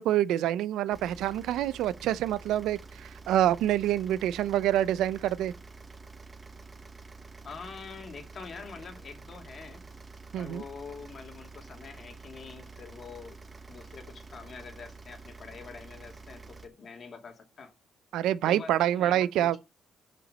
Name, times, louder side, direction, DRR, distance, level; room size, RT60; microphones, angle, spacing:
voice 1, 0.0-5.5 10.3-10.6 18.1-19.6, right 12 dB, 85° right, 0.5 m, -26 dB
sound 1, 0.9-16.7, right 3 dB, 25° right, 1.1 m, -48 dB
voice 2, 7.4-9.8 10.4-13.4 13.7-17.7 18.5-19.6, left 5 dB, 50° left, 2.3 m, -45 dB
6.9 x 5.8 x 5.4 m
cardioid pair, 90°, 0 cm